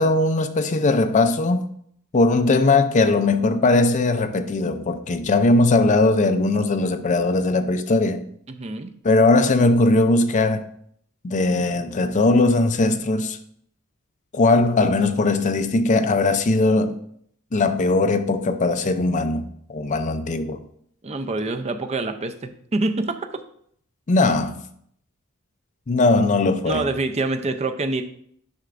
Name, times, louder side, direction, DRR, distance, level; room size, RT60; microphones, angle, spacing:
voice 1, 0.0-1.7 2.1-8.2 9.0-10.7 11.2-13.4 14.3-17.0 17.5-20.6 24.1-24.6 25.9-26.9, left 2 dB, 35° left, 0.5 m, -19 dB
voice 2, 8.5-8.9 21.0-23.4 26.7-28.0, right 2 dB, 30° right, 0.5 m, -26 dB
9.5 x 5.7 x 2.5 m
head